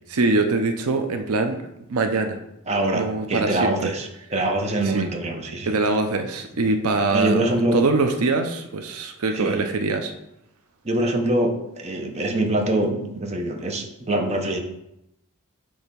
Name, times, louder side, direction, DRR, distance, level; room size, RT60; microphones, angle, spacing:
voice 1, 0.1-1.6 1.9-2.4 2.9-3.9 4.8-5.1 5.7-7.4 7.7-10.1, right 3 dB, 80° right, 6 dB, 0.6 m, -23 dB
voice 2, 2.7-5.8 7.1-7.8 9.3-9.6 10.8-14.6, right 1 dB, 30° right, 3 dB, 0.8 m, -24 dB
6.3 x 3.4 x 5.2 m, 0.84 s
head